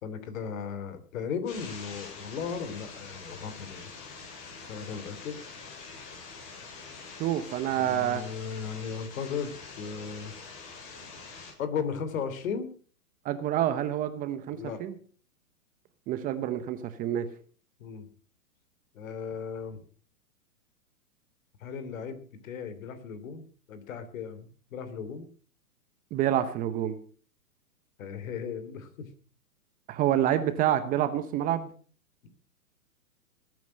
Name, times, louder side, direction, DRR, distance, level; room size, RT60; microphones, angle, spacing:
voice 1, 0.0-3.9 4.7-5.4 7.8-10.3 11.6-12.7 14.5-14.8 17.8-18.1 18.9-19.8 21.6-25.3 28.0-29.0, left 6 dB, 60° left, 12 dB, 3.1 m, -36 dB
sound 1, 1.5-11.5, left 4 dB, 35° left, 7.8 m, -45 dB
voice 2, 7.2-8.2 13.2-14.9 16.1-17.3 26.1-27.0 29.9-31.7, right 11 dB, 20° right, 11 dB, 0.8 m, -28 dB
19.5 x 9.3 x 6.3 m, 0.43 s
hypercardioid pair, 140°, 46 cm